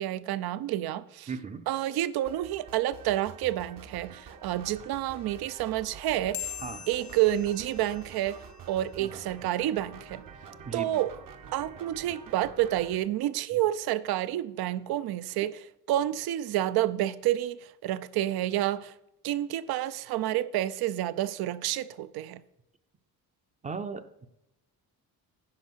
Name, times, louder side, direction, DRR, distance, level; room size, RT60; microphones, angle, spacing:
voice 1, 0.0-1.3 1.7-6.5 6.9-8.4 8.7-10.2 10.7-11.1 11.5-18.9 19.2-22.4, right 13 dB, 75° right, 0.6 m, -29 dB
voice 2, 1.3-1.7 6.6-6.8 9.0-9.1 10.7-10.9 23.6-24.3, right 5 dB, 20° right, 0.5 m, -37 dB
sound 1, 2.2-13.0, right 6 dB, 60° right, 1.1 m, -48 dB
sound 2, 6.3-9.2, left 12 dB, 70° left, 0.8 m, -43 dB
9.7 x 4.9 x 6.3 m
cardioid pair, 130°, 38 cm